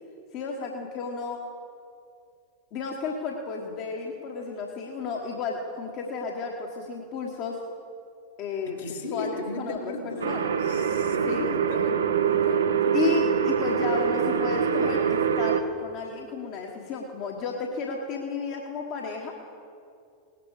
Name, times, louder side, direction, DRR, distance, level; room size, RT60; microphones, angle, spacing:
voice 1, 0.3-1.4 2.7-7.6 8.4-8.8 9.1-10.6 11.3-11.5 12.9-19.3, left 4 dB, 40° left, 0 dB, 1.4 m, -32 dB
voice 2, 8.7-13.2, left 3 dB, 60° left, 0 dB, 2.2 m, -37 dB
sound 1, 10.2-15.6, right 7 dB, 70° right, 0.8 m, -24 dB
18.5 x 10.5 x 4.9 m, 2.5 s
figure-of-eight pair, 90°, 0 cm